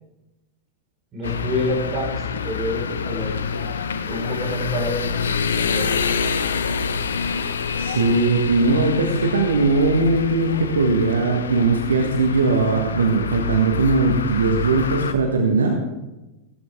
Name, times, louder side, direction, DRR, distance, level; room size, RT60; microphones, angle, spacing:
voice 1, 1.1-3.7 4.1-6.0, left 1 dB, 25° right, -2 dB, 4.8 m, -28 dB
sound 1, 1.2-15.1, left 6 dB, 65° left, 0.7 m, -27 dB
voice 2, 7.8-15.8, right 3 dB, 70° right, 3 dB, 1.4 m, -19 dB
15.5 x 12.5 x 3.6 m, 1.0 s
figure-of-eight pair, 90°, 0 cm